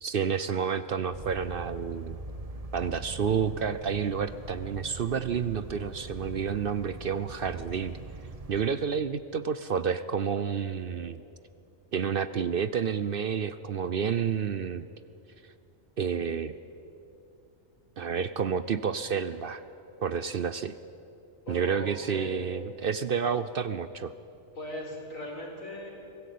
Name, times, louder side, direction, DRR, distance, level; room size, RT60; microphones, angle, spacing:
voice 1, 0.0-2.2 2.7-8.0 8.5-11.2 11.9-14.9 16.0-16.6 18.0-19.6 20.0-20.8 21.5-24.1, right 6 dB, 55° right, 13 dB, 0.7 m, -30 dB
sound 1, 1.1-8.7, right 2 dB, 30° right, 1.2 m, -42 dB
voice 2, 21.4-22.4 24.5-26.0, equal, 90° left, 0 dB, 4.9 m, -39 dB
25.0 x 17.5 x 8.5 m, 2.7 s
omnidirectional pair, 1.4 m